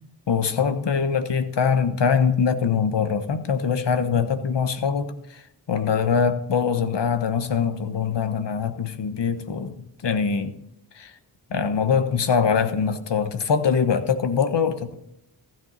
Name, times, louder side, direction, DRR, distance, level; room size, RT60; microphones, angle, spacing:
voice 1, 0.3-5.4 5.7-10.5 11.0-11.1 11.5-14.9, left 6 dB, 70° left, 9 dB, 1.3 m, -23 dB
15.5 x 10.5 x 4.1 m, 0.80 s
cardioid pair, 50°, 44 cm